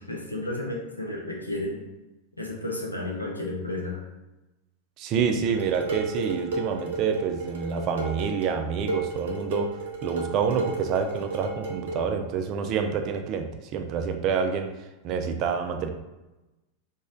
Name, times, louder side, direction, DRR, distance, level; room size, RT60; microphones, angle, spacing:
voice 1, 0.0-1.8 2.4-4.0, left 2 dB, 85° left, 0 dB, 0.6 m, -32 dB
voice 2, 5.0-9.7 10.0-14.7 15.0-15.9, right 6 dB, 40° right, 5 dB, 0.4 m, -27 dB
Dishes pots and pans, 5.5-12.1, right 3 dB, 60° right, 0.7 m, -33 dB
3.0 x 2.3 x 3.6 m, 1.0 s
figure-of-eight pair, 90°, 0 cm